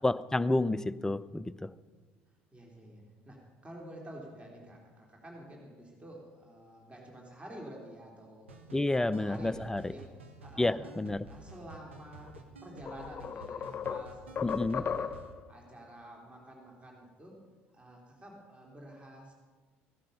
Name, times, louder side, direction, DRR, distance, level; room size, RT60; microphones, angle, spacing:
voice 1, 0.0-1.7 8.7-9.9 10.6-11.3 14.4-14.8, left 2 dB, 10° left, 14 dB, 0.5 m, -30 dB
voice 2, 2.5-10.9 11.3-12.3 12.6-15.1 15.5-17.4 17.7-19.3, right 1 dB, 20° right, -1 dB, 3.3 m, -49 dB
sound 1, 8.5-15.3, right 2 dB, 85° right, 1.4 m, -52 dB
sound 2, 12.3-12.4 12.9-15.4, left 7 dB, 35° left, 0.9 m, -36 dB
16.0 x 11.5 x 5.6 m, 1.4 s
figure-of-eight pair, 60°, 6 cm